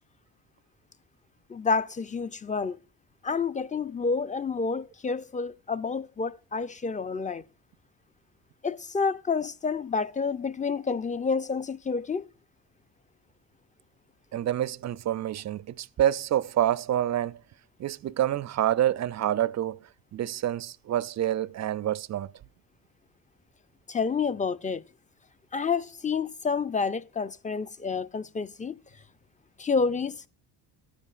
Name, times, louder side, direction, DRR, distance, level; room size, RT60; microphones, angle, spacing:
voice 1, 1.5-2.8 3.2-7.4 8.6-12.3 23.9-24.8 25.5-28.8 29.6-30.3, left 5 dB, 15° left, 0.5 m, -29 dB
voice 2, 14.3-17.4 17.8-19.8 20.1-22.3, right 11 dB, 40° right, 0.5 m, -27 dB
13.0 x 9.7 x 2.5 m
supercardioid pair, 55°, 46 cm